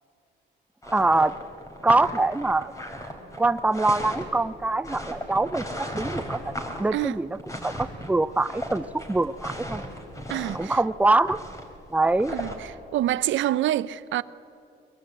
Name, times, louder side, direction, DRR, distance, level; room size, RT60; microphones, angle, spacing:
sound 1, 0.8-12.7, equal, 15° left, 4.0 m, -36 dB
voice 1, 0.9-1.3 1.8-2.7 3.4-6.5 6.8-9.8 10.5-11.4 11.9-12.3, right 2 dB, 5° right, 0.6 m, -24 dB
voice 2, 10.3-10.8 12.3-14.2, right 13 dB, 75° right, 0.6 m, -27 dB
22.5 x 22.0 x 8.2 m
cardioid pair, 90°, 20 cm